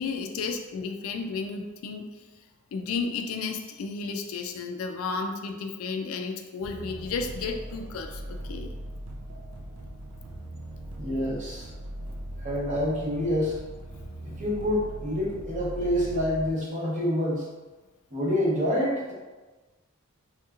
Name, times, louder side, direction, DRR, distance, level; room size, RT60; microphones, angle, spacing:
voice 1, 0.0-2.4 2.7-8.7, left 4 dB, 70° left, 5 dB, 0.3 m, -33 dB
sound 1, 6.6-16.5, right 1 dB, 85° right, 0.5 m, -39 dB
voice 2, 11.0-11.7 12.4-13.6 14.3-17.5 18.1-19.1, left 1 dB, 35° right, -5 dB, 0.8 m, -27 dB
3.1 x 2.9 x 2.4 m, 1.2 s
head